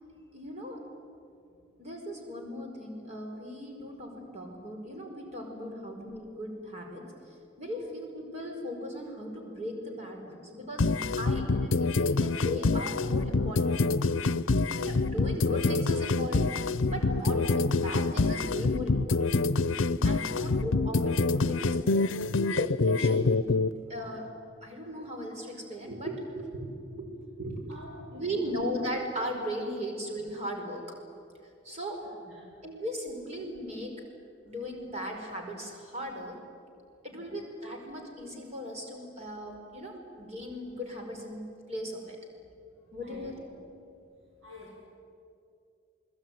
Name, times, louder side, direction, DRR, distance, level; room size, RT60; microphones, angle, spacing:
voice 1, 0.3-0.8 1.8-10.9 11.2-13.7 14.8-16.5 16.9-19.3 20.0-22.0 22.5-23.2 23.9-24.3 24.6-27.1 27.3-31.0 31.6-32.0 32.6-34.0 34.4-36.4 37.0-41.4 41.7-42.2 42.9-43.5, equal, 35° right, 1 dB, 5.1 m, -38 dB
sound 1, 10.8-23.7, left 3 dB, 75° left, 0.7 m, -26 dB
voice 2, 27.7-28.5 32.0-32.5 37.1-37.4 43.0-43.3 44.4-44.8, left 1 dB, 80° right, -5 dB, 7.3 m, -51 dB
29.0 x 21.0 x 9.4 m, 2.4 s
head